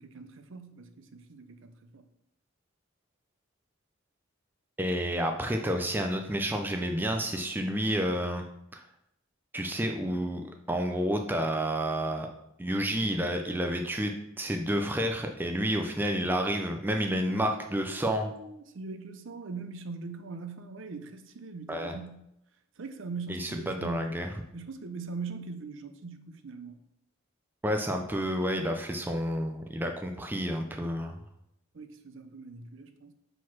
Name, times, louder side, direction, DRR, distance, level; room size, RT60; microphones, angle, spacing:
voice 1, 0.0-2.1 17.2-22.2 22.8-24.1 24.5-26.8 30.1-30.2 31.7-33.1, right 4 dB, 60° right, 9 dB, 0.5 m, -42 dB
voice 2, 4.8-8.4 8.7-8.8 9.5-10.4 10.7-12.3 12.6-14.1 14.4-18.3 21.7-21.9 23.3-24.3 27.6-31.1, equal, 10° right, 4 dB, 0.4 m, -30 dB
5.0 x 3.9 x 5.9 m, 0.81 s
head